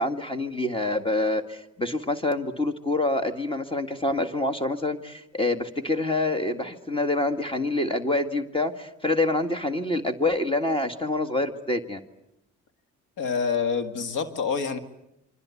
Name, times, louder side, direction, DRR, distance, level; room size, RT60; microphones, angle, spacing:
voice 1, 0.0-12.0, left 2 dB, 15° left, 7 dB, 1.8 m, -26 dB
voice 2, 13.2-14.8, left 5 dB, 90° left, 9 dB, 2.0 m, -27 dB
27.5 x 25.0 x 8.5 m, 0.84 s
cardioid pair, 90°, 30 cm